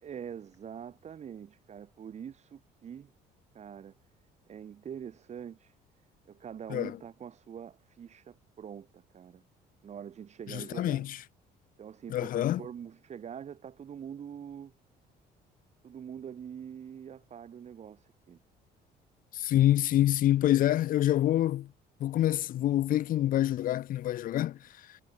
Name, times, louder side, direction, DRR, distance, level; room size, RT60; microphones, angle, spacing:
voice 1, 0.0-3.1 3.5-3.9 4.5-5.7 6.3-9.4 9.8-11.1 11.8-14.7 15.8-18.4, right 8 dB, 40° right, 1.5 m, -44 dB
voice 2, 10.5-11.2 12.1-12.6 19.3-21.7 22.0-24.6, left 13 dB, 55° left, 0.6 m, -26 dB
cardioid pair, 110°, 17 cm